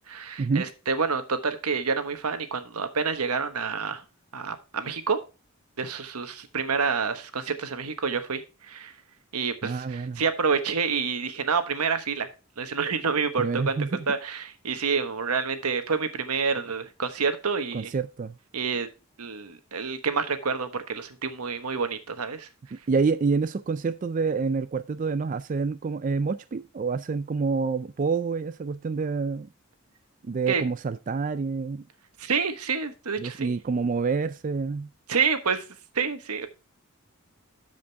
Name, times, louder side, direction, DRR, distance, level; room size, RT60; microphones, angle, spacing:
voice 1, 0.1-4.0 4.3-5.2 5.8-8.9 9.3-12.3 12.6-13.8 14.1-17.9 18.5-18.9 19.2-22.5 30.5-30.6 32.2-33.5 35.1-35.6 35.9-36.5, right 5 dB, 90° right, 1.2 m, -28 dB
voice 2, 9.6-10.2 13.4-14.1 17.7-18.4 22.7-29.5 30.2-31.8 33.2-34.9, right 4 dB, 35° right, 0.3 m, -27 dB
12.5 x 5.2 x 3.4 m
head